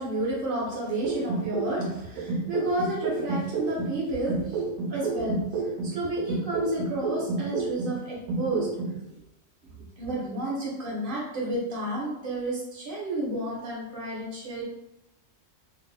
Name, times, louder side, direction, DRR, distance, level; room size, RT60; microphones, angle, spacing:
voice 1, 0.0-5.4 5.8-8.7 9.1-9.2 10.0-14.6, right 1 dB, 40° right, -5 dB, 1.1 m, -31 dB
sound 1, 1.0-4.0 4.3-8.0 8.3-9.0, right 4 dB, 90° right, 1.1 m, -29 dB
2.9 x 2.5 x 3.4 m, 0.89 s
omnidirectional pair, 1.6 m